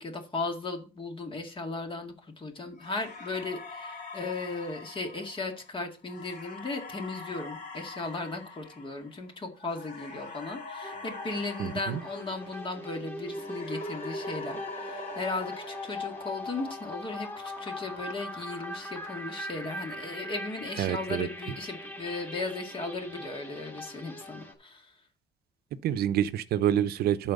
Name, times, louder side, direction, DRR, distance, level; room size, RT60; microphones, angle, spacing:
voice 1, 0.0-24.9, left 3 dB, 30° left, 2.0 m, -36 dB
sound 1, 2.8-13.0 13.3-16.7, left 3 dB, 50° left, 3.5 m, -44 dB
sound 2, 10.8-24.5, left 1 dB, 10° left, 2.3 m, -40 dB
voice 2, 11.6-12.0 20.8-21.3 25.8-27.3, right 11 dB, 70° right, 0.7 m, -27 dB
11.5 x 4.5 x 5.3 m
cardioid pair, 110°, 17 cm